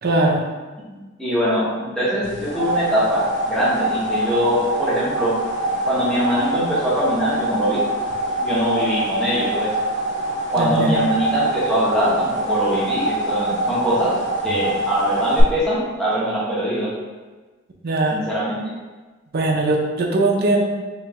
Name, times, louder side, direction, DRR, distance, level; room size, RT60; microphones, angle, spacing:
voice 1, 0.0-0.4 10.6-11.0 17.8-18.2 19.3-20.7, right 2 dB, 55° right, 0 dB, 0.6 m, -20 dB
voice 2, 0.9-5.4 5.9-7.8 8.4-9.7 10.5-14.2 14.4-16.9 18.1-18.6, equal, 5° left, -9 dB, 0.9 m, -22 dB
sound 1, 2.2-15.4, right 1 dB, 60° left, 0.9 m, -24 dB
3.0 x 3.0 x 3.5 m, 1.3 s
head